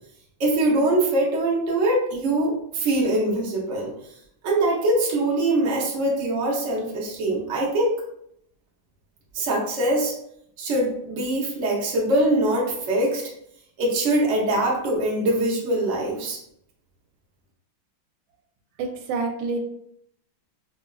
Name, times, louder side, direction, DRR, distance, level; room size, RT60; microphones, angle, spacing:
voice 1, 0.4-3.9 4.4-8.0 9.3-10.1 10.6-13.2 13.8-16.4, right 1 dB, 65° right, -3 dB, 0.7 m, -23 dB
voice 2, 18.8-19.6, right 4 dB, 85° right, 3 dB, 1.4 m, -27 dB
4.5 x 2.2 x 2.2 m, 0.73 s
omnidirectional pair, 2.2 m